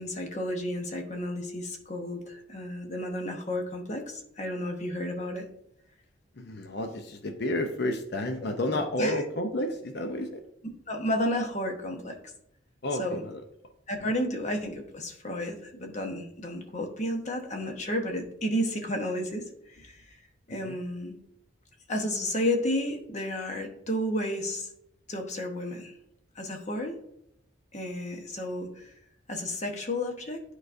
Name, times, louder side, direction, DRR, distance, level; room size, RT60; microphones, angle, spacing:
voice 1, 0.0-5.4 8.6-9.2 10.9-12.2 13.0-13.2 13.9-20.0 20.5-21.2 21.9-24.7 25.1-25.9 26.4-27.0 27.7-28.9 29.3-30.4, left 1 dB, 35° left, 3 dB, 1.0 m, -32 dB
voice 2, 6.4-10.4 12.8-13.4 20.6-20.8, left 1 dB, 55° left, 5 dB, 0.6 m, -31 dB
10.5 x 4.7 x 2.6 m, 0.73 s
head